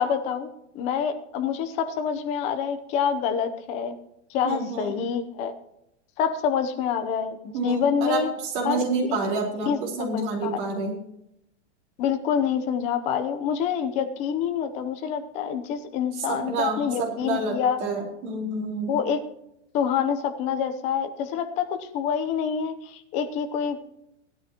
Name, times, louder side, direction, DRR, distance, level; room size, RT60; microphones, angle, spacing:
voice 1, 0.0-4.0 4.3-5.5 6.2-8.3 8.6-8.8 9.6-10.6 12.0-17.8 18.9-19.2 19.7-23.8, left 7 dB, 20° left, 8 dB, 0.7 m, -27 dB
voice 2, 4.4-4.9 7.5-11.0 16.1-19.0, right 3 dB, 40° right, -1 dB, 4.3 m, -28 dB
17.0 x 12.5 x 3.0 m, 0.82 s
supercardioid pair, 170°, 36 cm